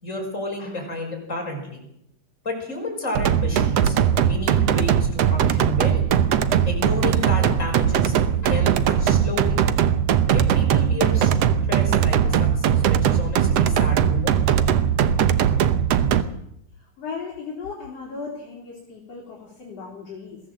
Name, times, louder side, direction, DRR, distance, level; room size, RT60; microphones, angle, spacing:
voice 1, 0.0-1.8 2.4-6.0 6.6-8.2 8.4-9.6 10.3-11.4 11.7-14.4, left 2 dB, 20° left, 1 dB, 5.8 m, -31 dB
sound 1, 3.2-16.2, right 9 dB, 65° right, 1.7 m, -20 dB
voice 2, 17.0-20.4, left 5 dB, 50° left, -3 dB, 4.6 m, -36 dB
22.5 x 15.5 x 7.7 m, 0.78 s
omnidirectional pair, 3.7 m